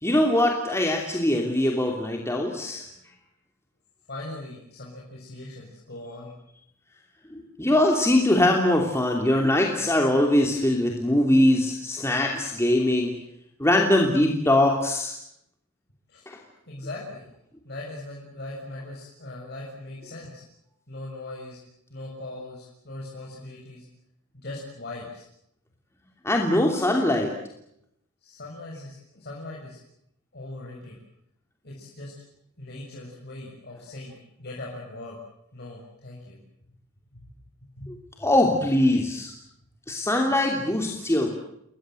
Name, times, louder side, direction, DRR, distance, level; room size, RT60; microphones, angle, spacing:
voice 1, 0.0-2.8 7.3-13.1 13.6-15.1 16.3-16.4 26.2-27.3 37.9-39.3 39.9-41.3, left 1 dB, 10° left, 1 dB, 3.0 m, -22 dB
voice 2, 4.1-6.3 16.1-16.3 16.7-17.3 17.6-20.4 20.9-21.6 21.9-23.8 24.3-25.2 28.2-29.8 30.3-31.0 31.6-32.1 32.6-35.2 35.5-36.4 37.1-37.3 37.8-37.9, left 2 dB, 50° left, -3 dB, 6.9 m, -40 dB
29.5 x 23.0 x 7.8 m, 0.77 s
head